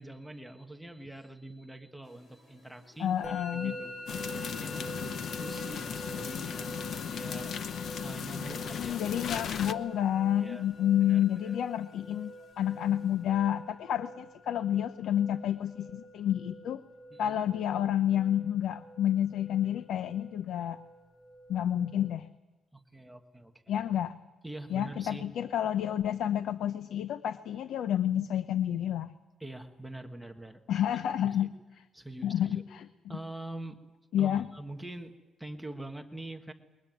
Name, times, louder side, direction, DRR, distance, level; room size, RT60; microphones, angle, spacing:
voice 1, 0.0-9.2 10.4-10.7 11.1-11.6 17.1-17.3 22.7-23.5 24.4-25.3 29.4-30.8 31.2-31.5 31.9-32.6 33.1-33.8 34.2-35.1 35.4-36.5, right 1 dB, ahead, 4 dB, 1.3 m, -44 dB
sound 1, 2.0-13.9, left 2 dB, 40° left, 4.1 m, -63 dB
voice 2, 3.0-3.7 8.8-16.8 17.2-20.8 21.5-22.3 23.7-24.1 24.7-29.1 30.7-31.5 32.2-32.8 34.1-34.5, left 10 dB, 75° left, 12 dB, 0.7 m, -29 dB
Musical instrument, 3.2-22.1, equal, 20° left, 4.9 m, -46 dB
sound 2, 4.1-9.7, left 7 dB, 55° left, 1.0 m, -37 dB
21.5 x 21.0 x 9.3 m, 1.2 s
cardioid pair, 150°, 0 cm